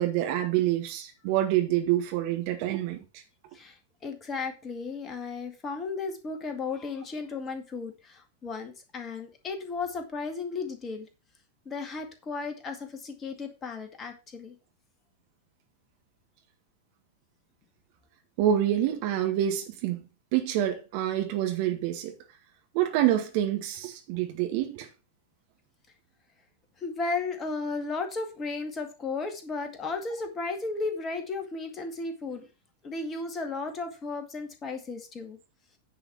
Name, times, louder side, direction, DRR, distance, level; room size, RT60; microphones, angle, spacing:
voice 1, 0.0-3.2 18.4-20.0 20.3-22.1 22.7-24.9, right 12 dB, 45° right, 1.8 m, -27 dB
voice 2, 4.0-11.1 11.7-14.6 26.8-32.5 32.8-35.4, left 4 dB, 25° left, 2.1 m, -34 dB
9.8 x 5.1 x 5.9 m
figure-of-eight pair, 90°, 0 cm